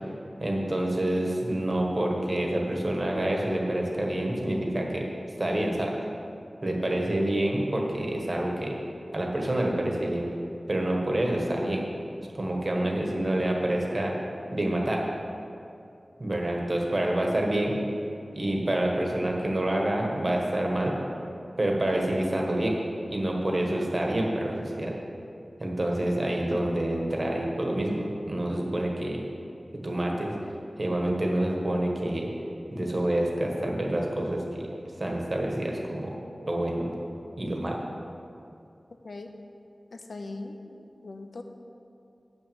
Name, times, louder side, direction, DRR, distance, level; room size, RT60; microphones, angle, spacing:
voice 1, 0.4-5.0 5.4-5.9 6.6-8.7 9.1-10.3 10.7-11.8 12.3-14.1 14.5-15.0 16.2-17.7 18.3-20.9 21.6-22.7 23.1-24.9 25.6-29.2 29.8-30.3 30.8-32.3 32.7-34.7 35.0-36.1 36.5-36.9 37.4-37.8, right 1 dB, 40° right, 0 dB, 1.6 m, -27 dB
voice 2, 39.9-41.4, left 2 dB, 85° left, 5 dB, 0.7 m, -41 dB
8.6 x 6.1 x 7.1 m, 2.6 s
wide cardioid pair, 65°, 0 cm